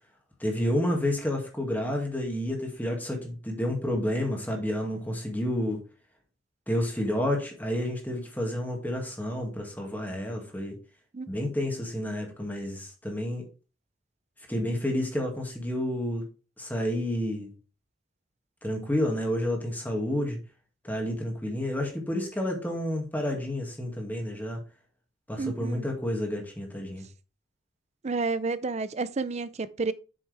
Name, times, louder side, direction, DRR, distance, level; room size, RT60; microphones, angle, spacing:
voice 1, 0.4-5.8 6.7-10.8 11.3-13.4 14.5-16.3 16.6-17.5 18.6-20.4 20.8-24.6 25.3-27.1, left 1 dB, 10° left, 2.0 m, -30 dB
voice 2, 25.4-25.9 28.0-29.9, right 3 dB, 35° right, 0.5 m, -30 dB
7.9 x 6.4 x 3.4 m
head